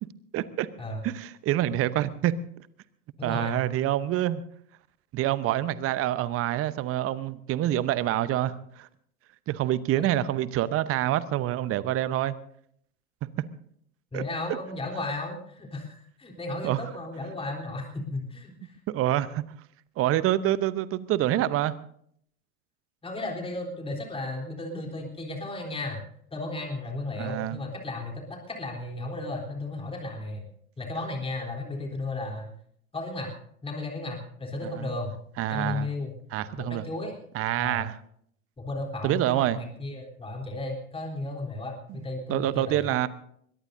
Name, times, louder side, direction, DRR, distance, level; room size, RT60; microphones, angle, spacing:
voice 1, 0.0-0.7 1.0-2.4 3.2-4.4 5.1-8.9 9.5-12.3 13.2-13.4 14.1-14.2 16.6-16.8 18.9-19.4 20.0-21.7 27.2-27.6 34.8-34.9 35.4-35.9 36.3-36.8 37.3-38.0 39.0-39.6 41.9-42.0 42.3-43.1, right 13 dB, 30° right, 16 dB, 0.9 m, -26 dB
voice 2, 3.2-3.6 14.1-18.8 23.0-26.0 26.3-30.5 30.8-32.5 32.9-33.3 33.6-35.1 35.5-36.1 36.6-37.2 37.6-37.8 38.6-43.0, left 2 dB, 15° left, 0 dB, 3.6 m, -34 dB
22.5 x 21.5 x 2.7 m, 0.66 s
figure-of-eight pair, 85°, 43 cm